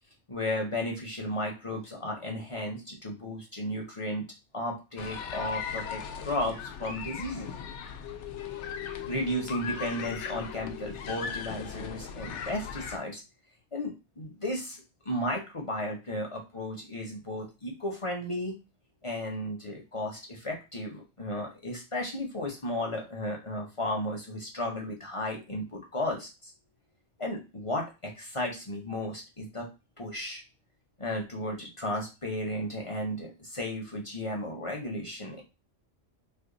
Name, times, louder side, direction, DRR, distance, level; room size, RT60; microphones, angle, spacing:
voice 1, 0.3-4.2 4.5-7.5 9.1-13.2 13.7-18.5 19.0-26.5 27.2-29.7 30.0-30.4 31.0-35.4, left 1 dB, 35° left, 0 dB, 0.6 m, -34 dB
sound 1, 5.0-13.0, left 7 dB, 75° left, 0.9 m, -38 dB
3.3 x 2.1 x 3.8 m, 0.28 s
omnidirectional pair, 1.3 m